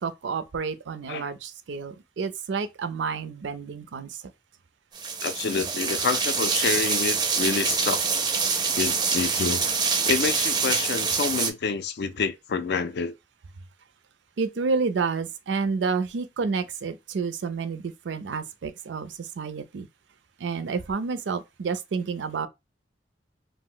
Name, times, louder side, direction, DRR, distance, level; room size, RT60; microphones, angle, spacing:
voice 1, 0.0-4.2 14.4-19.9 20.4-22.5, right 5 dB, 85° right, 0.4 m, -30 dB
sound 1, 4.9-11.5, right 5 dB, 25° right, 0.4 m, -25 dB
voice 2, 5.2-8.0 8.8-9.6 10.1-13.1, left 5 dB, 65° left, 0.4 m, -28 dB
2.5 x 2.0 x 3.7 m
head